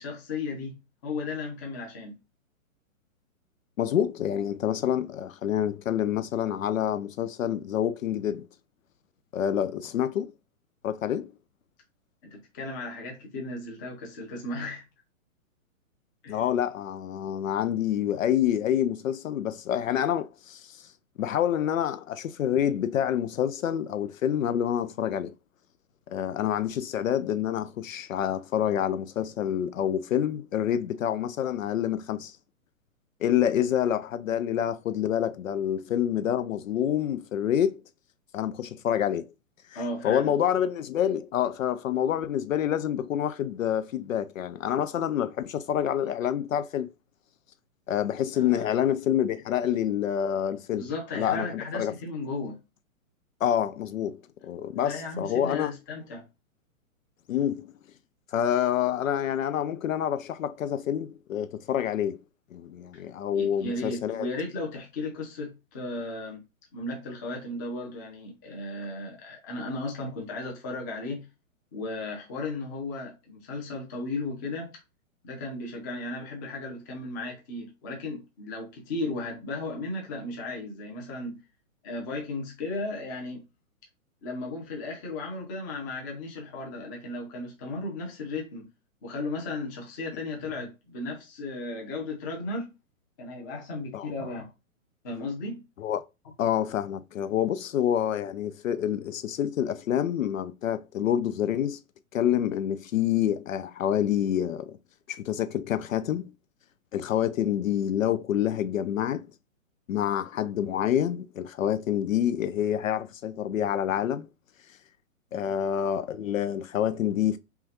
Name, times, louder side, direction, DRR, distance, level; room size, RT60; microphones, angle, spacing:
voice 1, 0.0-2.2 12.2-14.9 16.2-16.4 39.7-40.3 48.3-48.8 50.8-52.6 54.7-56.3 62.9-63.0 63.3-66.4 66.7-71.3 71.7-74.8 75.2-81.4 81.8-83.4 84.2-88.7 89.0-92.7 93.2-94.5 95.0-95.7 115.3-115.5, left 2 dB, 15° left, 0.7 m, -35 dB
voice 2, 3.8-8.5 9.3-10.3 10.8-11.3 16.3-20.9 21.2-25.3 26.1-32.4 33.2-37.8 38.3-39.3 39.7-46.9 47.9-50.9 51.1-51.5 51.7-51.9 53.4-54.2 54.4-55.7 57.3-57.7 58.3-62.2 62.5-64.3 93.9-94.1 95.8-96.0 96.4-101.8 102.1-104.8 105.1-106.3 106.9-109.3 109.9-114.3 115.3-117.4, left 10 dB, 65° left, 0.5 m, -27 dB
5.5 x 2.3 x 2.9 m
hypercardioid pair, 165°, 43 cm